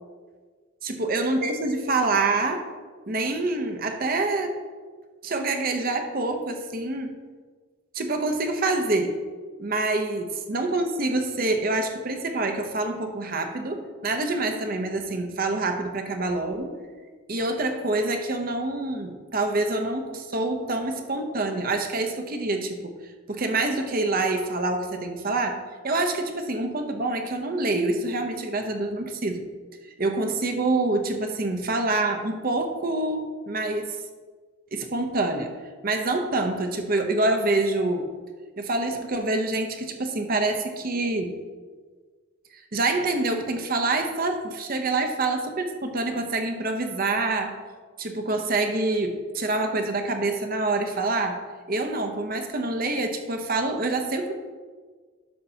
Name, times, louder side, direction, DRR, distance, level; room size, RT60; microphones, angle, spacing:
voice 1, 0.8-2.6 3.1-4.5 5.2-7.1 7.9-9.2 9.6-16.8 17.3-22.9 23.3-25.6 25.8-29.4 30.0-34.0 34.7-35.5 35.8-38.1 38.6-41.4 42.7-47.5 48.0-51.4 51.7-54.3, right 2 dB, 45° right, 5 dB, 0.8 m, -26 dB
11.0 x 6.7 x 2.8 m, 1.5 s
head